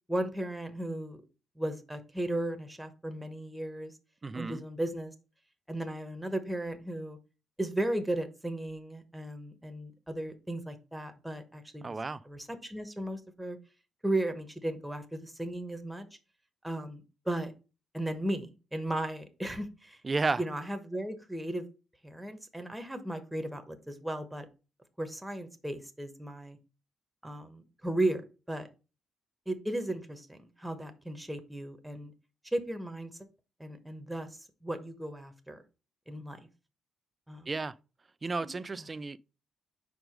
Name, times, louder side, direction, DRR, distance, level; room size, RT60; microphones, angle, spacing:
voice 1, 0.1-1.2 1.6-3.9 4.3-5.1 5.7-7.2 7.6-11.9 12.2-13.6 14.0-16.1 16.6-17.5 17.9-20.0 20.4-21.7 22.0-24.5 25.0-26.6 27.2-28.2 28.5-28.7 29.5-32.1 32.5-33.1 33.6-35.6 36.1-36.4 37.3-37.5 38.4-38.5, right 1 dB, 5° right, 1.1 m, -35 dB
voice 2, 4.2-4.6 11.8-12.2 20.0-20.4 37.5-37.7 38.2-39.2, right 3 dB, 30° right, 0.4 m, -32 dB
5.1 x 4.7 x 5.0 m
cardioid pair, 90°, 0 cm